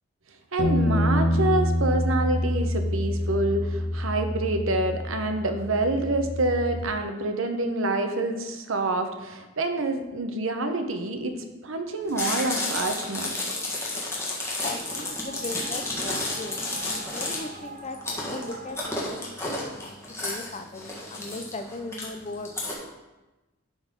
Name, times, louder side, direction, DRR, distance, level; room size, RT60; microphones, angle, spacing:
voice 1, 0.5-11.3 11.6-13.3, right 2 dB, 75° right, 6 dB, 0.9 m, -27 dB
Bass guitar, 0.6-6.8, left 1 dB, 55° left, 1.1 m, -26 dB
Chewing mastication, 12.1-22.7, left 2 dB, 15° left, 1.6 m, -31 dB
sound 1, 14.4-18.8, right 3 dB, 40° right, 0.7 m, -43 dB
voice 2, 14.5-22.5, left 2 dB, 30° left, 7 dB, 0.5 m, -38 dB
11.0 x 4.0 x 5.2 m, 1.1 s
head